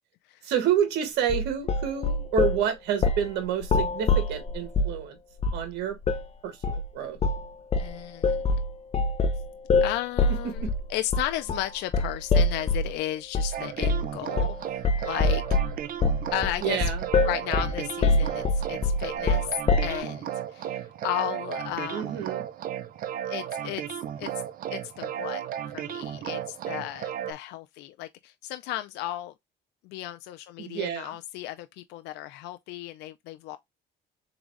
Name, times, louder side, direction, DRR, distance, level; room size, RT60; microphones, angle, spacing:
voice 1, 0.4-5.2 5.5-6.0 6.4-7.2 10.6-10.7 16.6-17.1 21.9-22.4 30.6-31.2, right 9 dB, 85° right, 1.5 m, -29 dB
sound 1, 1.3-2.6 3.0-3.3 3.6-5.0 5.4-5.7 6.0-6.3 6.6-6.9 7.2-7.5 7.7-12.9 13.3-13.5 13.8-14.1 14.4-14.6 14.8-20.0, left 3 dB, 40° left, 0.8 m, -24 dB
voice 2, 7.8-8.5 9.8-15.6 16.3-16.9 17.2-19.5 19.8-22.0 23.2-23.8 24.2-24.3 24.7-25.4 25.7-29.3 29.8-33.6, left 14 dB, 85° left, 0.5 m, -34 dB
sound 2, 13.5-27.3, right 10 dB, 55° right, 0.6 m, -34 dB
3.9 x 3.5 x 3.1 m
cardioid pair, 110°, 17 cm